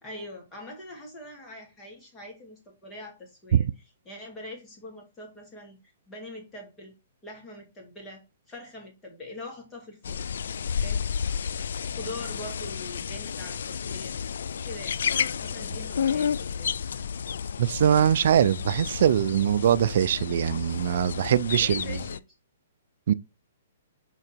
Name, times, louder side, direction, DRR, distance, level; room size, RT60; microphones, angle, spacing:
voice 1, 0.0-5.8 6.1-6.9 7.2-10.3 10.8-11.1 11.9-14.2 14.6-15.0 15.4-16.7 21.6-22.2, left 1 dB, 15° left, 2.4 m, -43 dB
sound 1, 10.0-22.2, left 7 dB, 75° left, 0.3 m, -31 dB
voice 2, 17.6-22.0 23.1-23.2, right 9 dB, 60° right, 0.4 m, -22 dB
5.9 x 3.9 x 4.4 m
hypercardioid pair, 145°, 0 cm